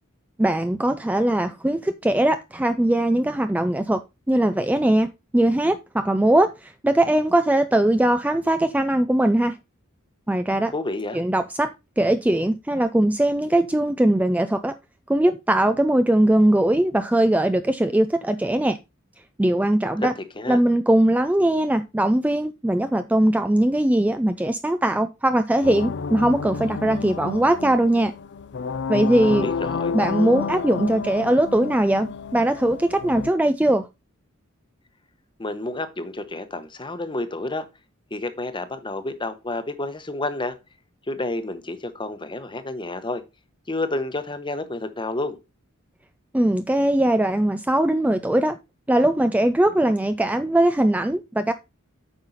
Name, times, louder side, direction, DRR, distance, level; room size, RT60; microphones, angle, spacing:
voice 1, 0.4-4.0 4.3-9.5 10.3-10.7 11.1-14.7 15.1-18.8 19.4-20.1 20.5-28.1 28.9-29.5 29.9-33.9 46.3-48.6 48.9-51.5, right 1 dB, 5° right, 0.4 m, -20 dB
voice 2, 10.7-11.2 20.0-20.6 29.2-30.0 35.4-37.7 38.1-40.6 41.1-43.2 43.7-45.4, left 2 dB, 25° left, 1.0 m, -30 dB
sound 1, 25.6-33.3, left 5 dB, 55° left, 0.5 m, -30 dB
8.9 x 5.7 x 4.0 m
head